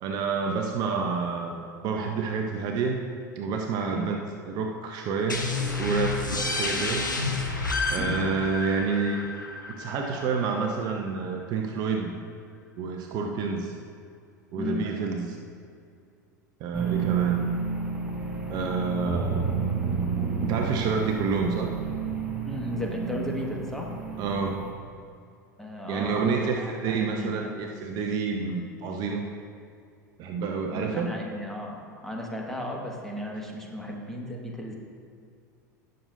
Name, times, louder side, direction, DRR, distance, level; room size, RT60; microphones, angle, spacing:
voice 1, 0.0-3.0 3.4-4.2 4.5-6.2 6.6-7.1 7.9-9.3 9.8-12.1 12.8-13.7 14.5-15.4 16.6-17.4 18.5-19.7 20.4-21.7 24.2-24.6 25.9-29.3 30.2-31.1, right 5 dB, 45° right, 3 dB, 0.8 m, -28 dB
sound 1, 5.3-10.7, left 3 dB, 90° left, 1.2 m, -30 dB
voice 2, 14.6-14.9 22.4-23.9 25.6-27.5 30.7-34.7, left 1 dB, 5° left, -1 dB, 1.7 m, -35 dB
sound 2, 16.7-24.7, right 6 dB, 10° right, 1.4 m, -31 dB
17.5 x 6.7 x 2.7 m, 2.4 s
figure-of-eight pair, 80°, 10 cm